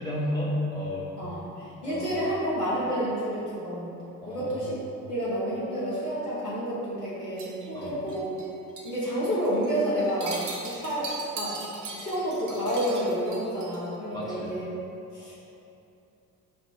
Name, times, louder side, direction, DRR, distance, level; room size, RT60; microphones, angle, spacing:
voice 1, 0.0-1.1 1.8-2.3 4.2-4.7 7.7-8.0 14.1-14.5, left 1 dB, 10° left, -6 dB, 0.3 m, -32 dB
voice 2, 1.2-3.9 4.2-4.7 5.1-8.3 8.8-11.6 11.9-14.6 15.1-15.5, equal, 90° left, -10 dB, 1.0 m, -30 dB
sound 1, 7.4-8.5 8.8-9.0 9.3-9.7 10.0-13.9, right 3 dB, 50° right, 0.7 m, -39 dB
5.0 x 2.0 x 3.0 m, 2.8 s
figure-of-eight pair, 55°, 45 cm